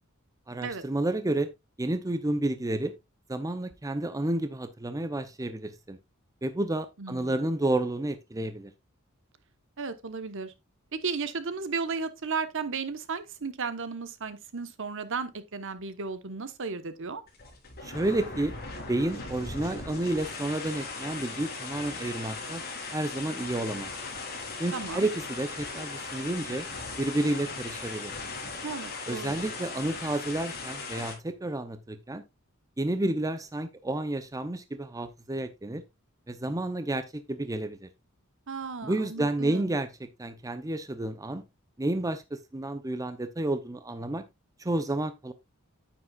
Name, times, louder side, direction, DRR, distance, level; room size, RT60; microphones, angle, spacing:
voice 1, 0.5-1.5 1.8-2.9 3.3-6.0 6.4-8.7 17.8-18.5 18.9-22.6 22.9-23.9 24.6-26.7 27.0-28.1 29.1-32.2 32.8-35.8 36.3-37.9 38.8-39.9 40.2-41.4 41.8-44.2 44.6-45.3, right 1 dB, 15° right, 0.6 m, -30 dB
voice 2, 7.0-7.4 9.8-10.5 10.9-17.2 24.7-25.1 28.6-29.3 38.5-39.8, right 4 dB, 60° right, 1.0 m, -34 dB
sound 1, 17.3-31.1, left 3 dB, 45° left, 3.7 m, -38 dB
9.5 x 8.7 x 2.3 m
head